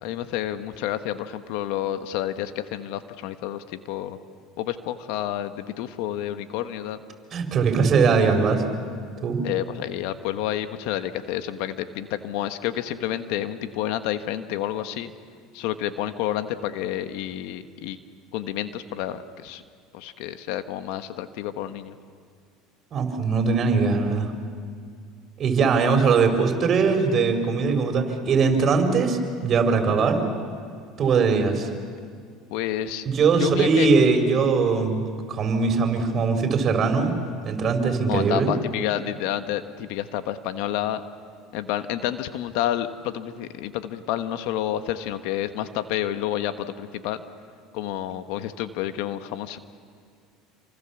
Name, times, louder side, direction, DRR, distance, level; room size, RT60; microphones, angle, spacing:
voice 1, 0.0-4.2 4.6-7.0 9.4-15.1 15.5-18.0 18.3-19.6 19.9-21.9 32.5-33.0 33.4-33.9 38.1-41.0 41.5-47.2 47.7-49.6, left 12 dB, 70° left, 10 dB, 1.3 m, -29 dB
voice 2, 7.3-8.6 9.2-9.4 22.9-24.3 25.4-30.2 31.0-31.7 33.0-35.0 35.3-37.2 37.4-38.5, right 5 dB, 40° right, 5 dB, 4.6 m, -21 dB
28.0 x 24.5 x 7.2 m, 2.2 s
supercardioid pair, 95°, 0 cm